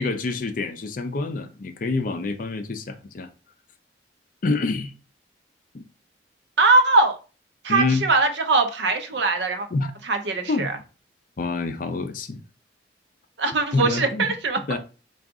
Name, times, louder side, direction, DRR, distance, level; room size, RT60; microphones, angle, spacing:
voice 1, 0.0-3.3 4.4-4.9 5.7-5.8 7.7-8.1 9.7-9.9 10.5-10.7 11.4-12.4 13.7-14.3 14.7-14.8, left 3 dB, 45° left, 0.4 m, -26 dB
voice 2, 6.6-7.2 7.6-9.7 10.0-10.7 13.4-14.6, right 3 dB, 65° right, 0.6 m, -21 dB
3.8 x 2.3 x 3.5 m
head